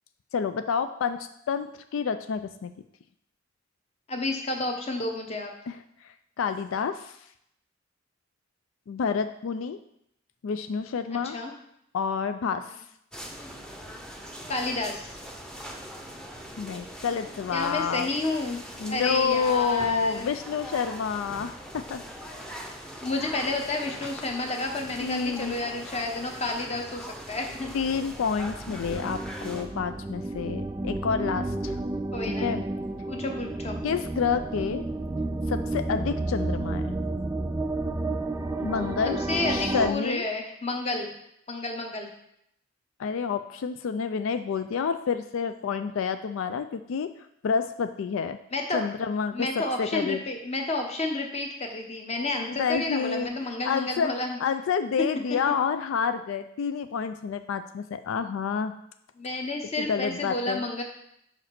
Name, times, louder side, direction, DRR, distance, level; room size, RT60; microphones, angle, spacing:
voice 1, 0.3-2.7 5.7-5.8 6.4-7.2 8.9-9.8 10.4-11.4 11.9-12.7 16.6-18.1 18.8-22.0 25.0-25.6 27.7-31.8 32.2-32.6 33.8-34.9 35.5-36.9 38.6-39.2 39.5-40.3 43.0-47.1 47.4-48.4 48.7-49.5 49.8-50.2 52.5-53.3 53.6-54.1 54.4-58.7 59.8-60.6, left 6 dB, 90° left, 10 dB, 0.4 m, -28 dB
voice 2, 4.1-5.5 11.1-11.5 14.5-15.1 17.5-18.6 18.9-20.3 23.0-27.7 32.1-32.5 33.1-33.8 39.3-41.1 41.5-42.1 48.5-48.8 49.3-54.4 59.2-60.8, left 2 dB, 35° left, 3 dB, 1.0 m, -31 dB
sound 1, 13.1-29.6, equal, 5° left, 0.7 m, -41 dB
sound 2, 27.4-39.9, right 2 dB, 15° right, 0.3 m, -31 dB
5.3 x 5.0 x 5.9 m, 0.75 s
head